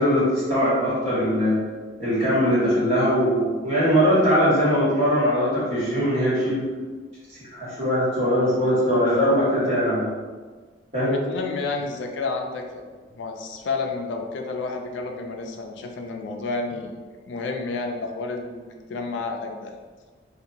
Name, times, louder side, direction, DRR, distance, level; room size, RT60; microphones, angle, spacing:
voice 1, 0.0-1.6 2.0-6.6 7.3-10.1 10.9-11.1, equal, 35° right, -9 dB, 1.2 m, -21 dB
voice 2, 11.0-12.9 13.1-17.0 17.3-19.7, left 3 dB, 70° left, 3 dB, 0.3 m, -30 dB
2.8 x 2.2 x 2.5 m, 1.4 s
head